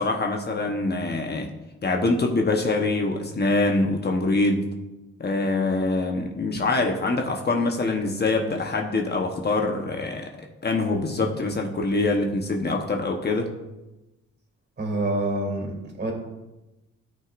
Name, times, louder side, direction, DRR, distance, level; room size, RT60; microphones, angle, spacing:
voice 1, 0.0-1.5 1.8-4.7 5.2-10.3 10.6-13.5, left 2 dB, 35° left, 2 dB, 1.1 m, -24 dB
voice 2, 14.8-16.1, right 1 dB, 35° right, 1 dB, 3.0 m, -27 dB
13.0 x 5.9 x 2.6 m, 1.0 s
cardioid pair, 90°, 30 cm